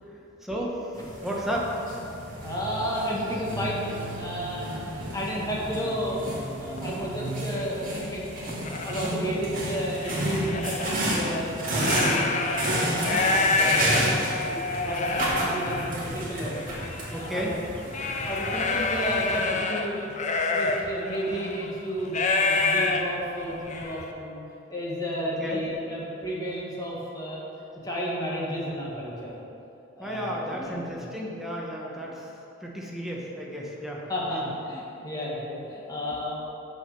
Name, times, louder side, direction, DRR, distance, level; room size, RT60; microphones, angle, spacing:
voice 1, 0.4-0.9 1.2-1.7 9.0-9.4 12.8-13.3 17.1-17.5 25.2-25.6 30.0-32.3 32.6-34.0 34.3-34.5, equal, ahead, -4 dB, 1.1 m, -33 dB
sound 1, 0.9-19.4, right 1 dB, 45° right, 2.1 m, -32 dB
voice 2, 2.4-3.9 4.1-6.2 6.6-8.3 8.7-12.3 12.6-14.1 14.5-16.6 17.1-17.6 18.3-20.0 20.4-24.4 24.7-27.4 27.8-29.3 30.0-31.0 32.0-32.1 34.1-36.3, equal, 20° left, -5 dB, 1.7 m, -32 dB
sound 2, 2.4-8.0, right 3 dB, 75° right, 0.5 m, -39 dB
sound 3, 6.1-6.2 6.8-7.0 7.7-7.8 8.2-9.1 9.6-11.0 11.6-24.1, left 3 dB, 35° left, 0.6 m, -28 dB
6.4 x 6.3 x 6.7 m, 2.8 s
head